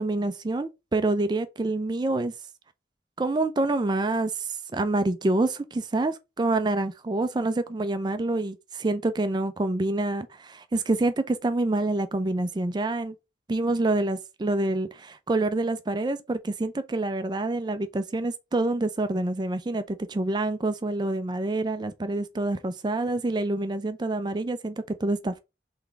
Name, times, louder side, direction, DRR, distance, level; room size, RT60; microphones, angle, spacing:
voice 1, 0.0-2.3 3.2-13.1 13.5-25.4, right 2 dB, 25° right, 0.4 m, -27 dB
3.9 x 3.5 x 3.3 m
head